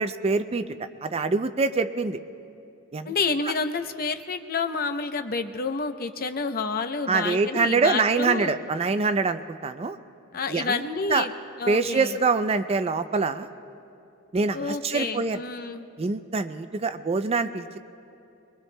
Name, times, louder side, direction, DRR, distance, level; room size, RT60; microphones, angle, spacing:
voice 1, 0.0-2.2 2.9-3.1 7.1-10.0 10.5-10.8 11.1-11.3 11.7-13.5 14.3-15.4 16.0-17.8, right 4 dB, 30° right, 10 dB, 0.4 m, -25 dB
voice 2, 3.1-8.5 10.3-11.3 11.6-12.2 14.5-15.8, left 4 dB, 45° left, 8 dB, 0.6 m, -29 dB
23.5 x 23.0 x 2.2 m, 2.7 s
head